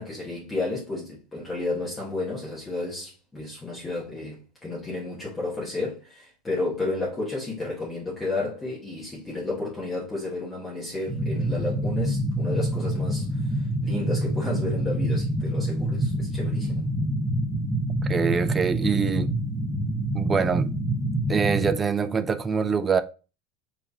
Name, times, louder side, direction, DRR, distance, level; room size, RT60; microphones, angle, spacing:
voice 1, 0.0-16.8, left 2 dB, 15° left, 1.4 m, -32 dB
sound 1, 11.1-21.7, right 1 dB, 5° right, 1.1 m, -26 dB
voice 2, 18.0-19.3 20.1-20.8 21.3-23.0, right 5 dB, 20° right, 0.4 m, -24 dB
4.6 x 3.3 x 2.7 m
supercardioid pair, 145°, 0 cm